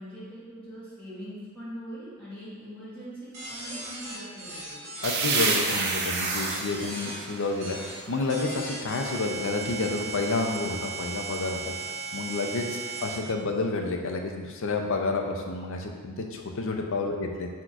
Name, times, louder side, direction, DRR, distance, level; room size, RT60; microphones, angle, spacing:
voice 1, 0.0-4.8 17.0-17.3, equal, 5° left, -12 dB, 1.2 m, -42 dB
sound 1, 3.3-7.2 7.6-8.0 8.3-13.2, right 3 dB, 35° right, 1.2 m, -37 dB
voice 2, 5.0-11.7 12.1-17.5, left 3 dB, 65° left, 3 dB, 0.5 m, -30 dB
sound 2, 5.0-8.6, right 4 dB, 50° right, 0.4 m, -29 dB
5.9 x 2.9 x 2.4 m, 1.5 s
head